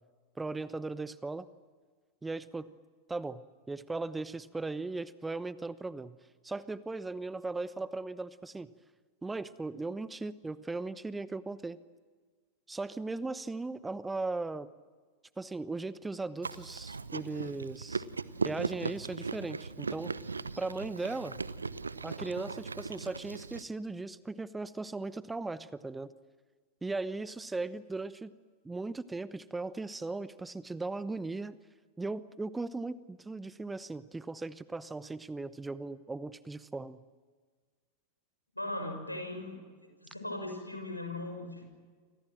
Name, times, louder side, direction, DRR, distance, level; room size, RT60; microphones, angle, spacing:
voice 1, 0.4-1.5 2.2-2.7 3.1-6.2 6.4-8.7 9.2-11.8 12.7-14.7 15.4-18.0 18.4-20.2 20.6-21.4 22.0-26.1 26.8-28.3 28.6-31.5 32.0-37.0, right 3 dB, 10° right, 17 dB, 0.9 m, -38 dB
Chewing mastication, 16.4-23.6, right 4 dB, 75° right, 0.9 m, -38 dB
voice 2, 38.5-39.6 40.0-41.6, left 2 dB, 85° left, 5 dB, 6.6 m, -38 dB
29.0 x 25.5 x 7.7 m, 1.5 s
figure-of-eight pair, 90°, 0 cm